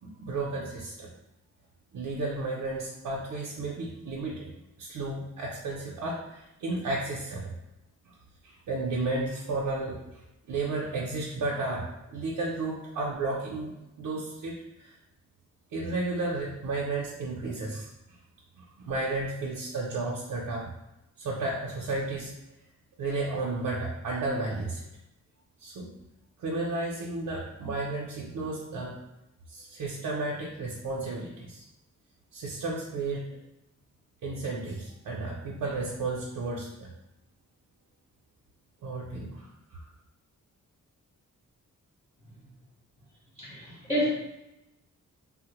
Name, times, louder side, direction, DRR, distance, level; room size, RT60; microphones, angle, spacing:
voice 1, 0.0-1.1 1.9-4.5 4.8-7.5 8.4-10.0 10.5-14.9 15.7-17.9 18.6-20.7 21.2-22.3 23.0-24.8 25.6-25.9 26.4-28.9 29.5-31.6 32.3-33.4 34.2-36.9 38.8-39.9, right 2 dB, 85° right, -3 dB, 0.6 m, -33 dB
voice 2, 43.4-44.1, equal, 20° left, -9 dB, 1.1 m, -28 dB
3.6 x 2.0 x 2.9 m, 0.92 s
wide cardioid pair, 145°, 31 cm